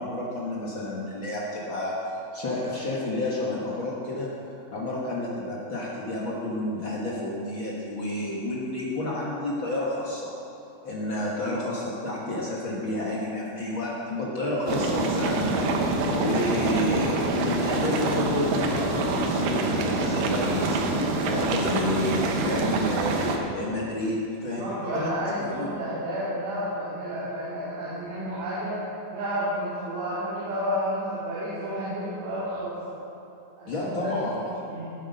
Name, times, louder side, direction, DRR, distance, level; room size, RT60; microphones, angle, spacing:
voice 1, 0.0-1.9 2.3-4.3 4.7-10.3 10.8-25.1 25.4-25.7 33.7-34.7, left 1 dB, 65° left, -5 dB, 1.2 m, -30 dB
sound 1, 14.7-23.4, right 2 dB, 70° right, 2.3 m, -26 dB
voice 2, 24.5-28.8 29.1-32.8 33.6-34.1 34.7-34.9, equal, 90° right, -9 dB, 4.8 m, -31 dB
17.0 x 7.9 x 5.5 m, 2.6 s
omnidirectional pair, 4.8 m